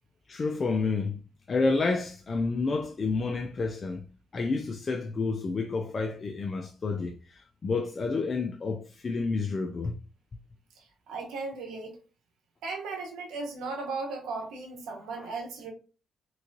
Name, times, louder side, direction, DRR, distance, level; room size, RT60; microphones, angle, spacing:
voice 1, 0.3-1.2 1.5-10.0 15.1-15.3, left 4 dB, 40° left, 0.3 m, -30 dB
voice 2, 11.1-12.0 12.6-15.7, right 3 dB, 85° right, 1.0 m, -36 dB
3.4 x 3.0 x 2.7 m
cardioid pair, 90°, 0 cm